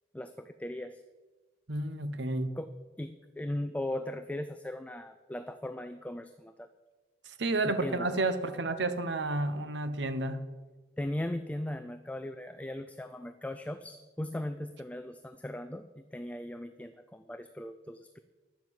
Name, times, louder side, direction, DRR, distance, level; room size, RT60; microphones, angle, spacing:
voice 1, 0.1-1.0 2.6-2.7 3.0-6.7 7.6-8.1 11.0-18.2, left 1 dB, 10° left, 9 dB, 0.4 m, -38 dB
voice 2, 1.7-2.5 7.2-10.4, right 2 dB, 70° right, 10 dB, 1.0 m, -31 dB
10.5 x 7.4 x 8.0 m, 1.3 s
head